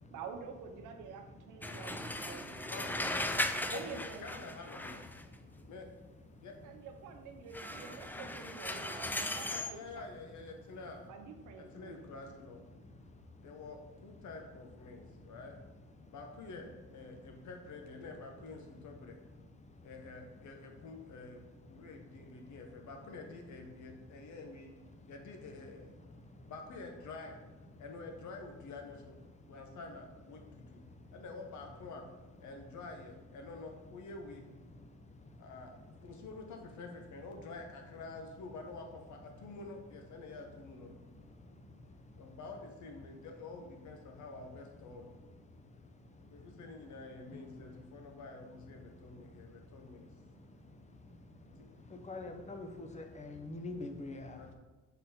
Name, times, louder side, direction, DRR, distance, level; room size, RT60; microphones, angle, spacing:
voice 1, 0.1-3.1 3.7-4.5 6.6-9.8 11.1-12.1, right 6 dB, 85° right, 5 dB, 0.8 m, -48 dB
sound 1, 1.6-5.3 7.5-9.8, left 1 dB, 5° left, 0.3 m, -38 dB
voice 2, 3.1-5.0 5.6-5.9 6.4-6.5 9.5-11.0 11.6-12.6 13.4-15.6 16.1-19.2 19.8-21.4 21.7-24.7 25.1-25.9 26.5-27.4 27.8-29.1 29.5-30.4 30.7-30.8 31.1-32.0 32.4-34.5 35.4-35.7 36.0-41.0 42.2-45.1 46.3-50.1 51.6-51.7 54.4-54.5, left 3 dB, 70° left, 3 dB, 1.1 m, -48 dB
voice 3, 52.1-54.3, left 2 dB, 25° left, 5 dB, 0.8 m, -43 dB
5.3 x 4.1 x 4.3 m, 1.2 s
cardioid pair, 90°, 30 cm